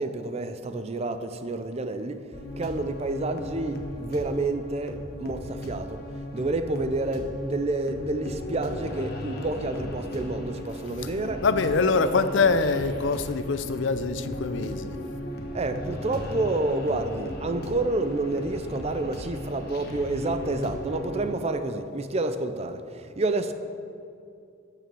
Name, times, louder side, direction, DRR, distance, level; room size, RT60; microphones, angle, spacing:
voice 1, 0.0-2.2 2.6-6.0 6.3-11.4 15.5-23.5, right 2 dB, 35° right, 0.5 m, -29 dB
sound 1, 2.3-21.4, left 1 dB, 55° left, 1.2 m, -36 dB
voice 2, 11.4-15.0, left 4 dB, 75° left, 0.5 m, -24 dB
9.2 x 6.8 x 6.9 m
head